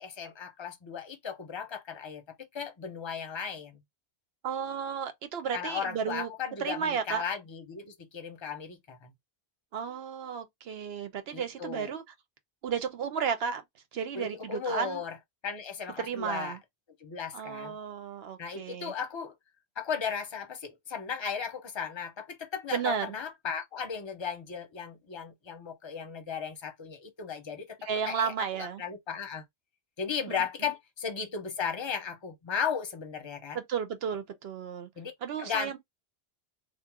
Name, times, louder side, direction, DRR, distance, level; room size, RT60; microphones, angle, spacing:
voice 1, 0.0-2.2 2.5-3.8 5.5-9.1 11.3-11.9 14.1-15.2 15.4-16.6 17.0-17.8 18.4-19.3 19.8-27.8 28.1-28.3 28.6-29.4 30.0-33.6 35.0-35.1 35.4-35.8, left 7 dB, 30° left, 0.7 m, -36 dB
voice 2, 4.4-6.3 6.6-7.2 9.7-12.0 12.6-13.6 13.9-15.0 16.0-16.6 17.3-18.9 22.7-23.2 27.8-28.8 30.3-30.4 33.5-34.9 35.2-35.8, right 7 dB, 70° right, 0.9 m, -33 dB
3.0 x 2.5 x 3.5 m
omnidirectional pair, 1.1 m